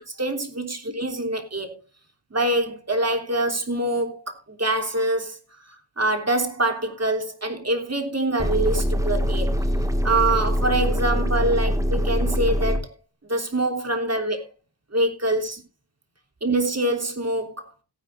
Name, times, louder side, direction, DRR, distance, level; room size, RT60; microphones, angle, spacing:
voice 1, 0.2-1.7 2.3-4.3 4.6-5.4 6.0-9.6 10.0-12.8 13.3-14.4 14.9-15.6 16.4-17.7, right 2 dB, 35° right, 3.2 m, -24 dB
sound 1, 8.4-12.8, equal, 5° right, 1.9 m, -23 dB
17.5 x 10.5 x 2.6 m
cardioid pair, 60°, 45 cm